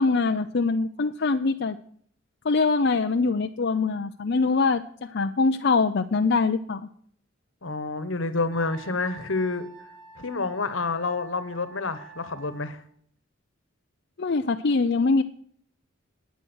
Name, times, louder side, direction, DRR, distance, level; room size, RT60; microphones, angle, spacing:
voice 1, 0.0-1.8 2.4-6.8 14.2-15.2, left 4 dB, 55° left, 7 dB, 0.6 m, -23 dB
voice 2, 7.6-9.7 10.2-12.8, left 3 dB, 75° left, 14 dB, 1.3 m, -28 dB
Wind instrument woodwind instrument, 8.5-12.7, right 5 dB, 85° right, 3.6 m, -48 dB
19.0 x 9.1 x 6.3 m, 0.63 s
head